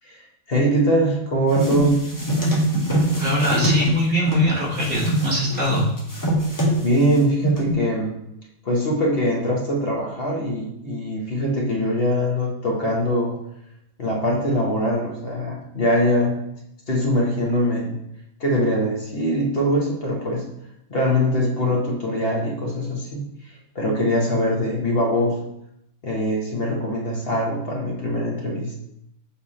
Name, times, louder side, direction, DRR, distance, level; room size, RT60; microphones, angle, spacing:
voice 1, 0.0-2.0 6.8-8.1 8.6-13.3 14.0-16.5 16.9-18.0 18.4-20.5 20.9-25.4 26.0-28.8, equal, 45° left, -2 dB, 1.3 m, -22 dB
sound 1, 1.5-4.5 4.8-7.1 7.4-7.8, equal, 15° left, 1.0 m, -23 dB
voice 2, 3.2-5.9, equal, 65° right, -5 dB, 2.0 m, -22 dB
7.1 x 3.4 x 4.2 m, 0.80 s
omnidirectional pair, 1.4 m